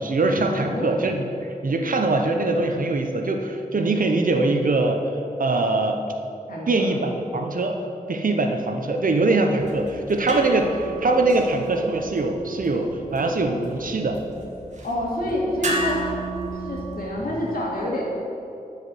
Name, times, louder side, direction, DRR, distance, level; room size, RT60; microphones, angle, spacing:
voice 1, 0.0-5.0 5.4-6.0 6.7-14.2, right 2 dB, 70° right, 4 dB, 1.0 m, -22 dB
voice 2, 6.5-6.9 14.8-16.0 16.5-18.0, left 1 dB, 90° left, -4 dB, 2.5 m, -27 dB
sound 1, 9.5-17.5, right 2 dB, 55° right, 1.8 m, -34 dB
10.5 x 5.1 x 7.9 m, 2.7 s
wide cardioid pair, 105°, 15 cm